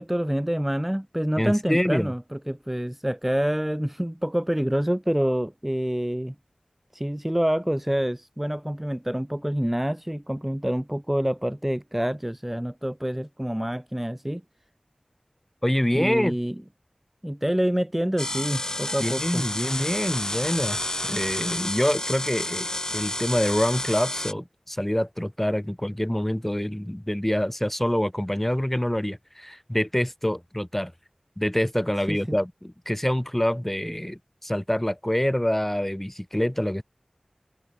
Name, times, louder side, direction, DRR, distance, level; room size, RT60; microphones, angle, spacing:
voice 1, 0.0-6.3 6.9-14.4 15.9-16.5 17.2-19.4 32.1-32.4, equal, 10° right, 1.0 m, -27 dB
voice 2, 1.4-2.1 15.6-16.4 19.0-30.9 31.4-36.8, equal, 10° left, 2.9 m, -26 dB
sound 1, 18.2-24.3, left 1 dB, 30° left, 3.5 m, -30 dB
wide cardioid pair, 60°, 2 cm